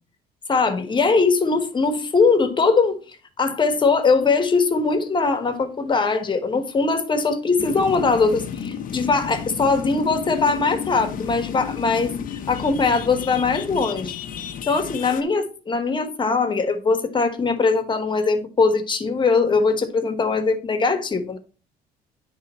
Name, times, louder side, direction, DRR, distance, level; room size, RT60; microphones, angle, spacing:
voice 1, 0.5-3.0 3.4-12.1 12.5-14.2 14.6-21.4, left 4 dB, 30° left, 1.3 m, -21 dB
sound 1, 7.6-15.2, left 8 dB, 55° left, 0.8 m, -32 dB
10.5 x 3.6 x 4.3 m
cardioid pair, 110°, 17 cm